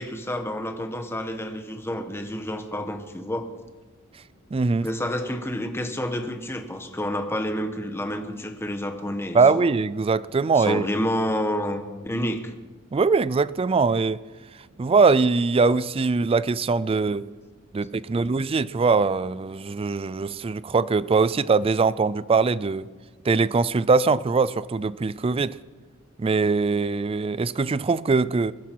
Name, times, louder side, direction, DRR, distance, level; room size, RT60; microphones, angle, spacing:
voice 1, 0.0-3.5 4.8-9.7 10.6-12.5, equal, 10° left, 1.1 m, -29 dB
voice 2, 4.5-4.9 9.3-10.8 12.9-14.2 14.8-17.3 17.7-22.9 23.2-25.6 26.2-28.5, right 4 dB, 25° right, 0.4 m, -22 dB
21.0 x 11.5 x 4.6 m
head